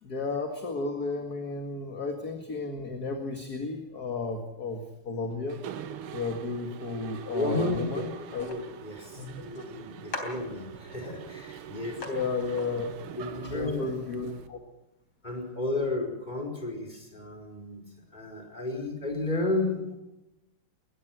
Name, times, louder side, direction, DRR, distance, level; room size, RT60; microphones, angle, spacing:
voice 1, 0.0-5.6 6.1-8.5 9.2-9.6 12.1-12.9 13.4-14.6, left 3 dB, 45° left, 4 dB, 2.4 m, -33 dB
Mechanisms, 5.5-14.5, right 8 dB, 90° right, 2.0 m, -44 dB
voice 2, 7.3-12.0 13.1-13.8 15.2-17.8 18.1-20.0, left 2 dB, 20° left, 1 dB, 5.1 m, -32 dB
sound 1, 8.4-8.6 9.6-9.7 10.1-11.2 11.6-11.7 12.0-12.1 12.4-12.7, left 3 dB, 85° left, 4.4 m, -40 dB
22.5 x 19.5 x 6.2 m, 0.95 s
omnidirectional pair, 2.4 m